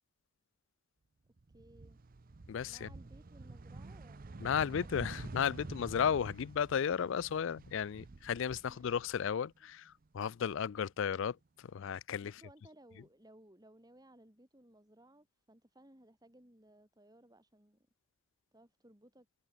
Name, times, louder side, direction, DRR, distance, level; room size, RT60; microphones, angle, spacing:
sound 1, 1.4-9.5 9.9-11.0, right 3 dB, 40° right, 0.6 m, -49 dB
voice 1, 1.5-2.0 2.6-5.5 8.6-8.9 9.6-9.7 12.2-17.8 18.5-19.3, right 1 dB, 15° right, 2.6 m, -61 dB
voice 2, 2.5-2.9 4.4-12.3, left 7 dB, 55° left, 0.3 m, -34 dB
head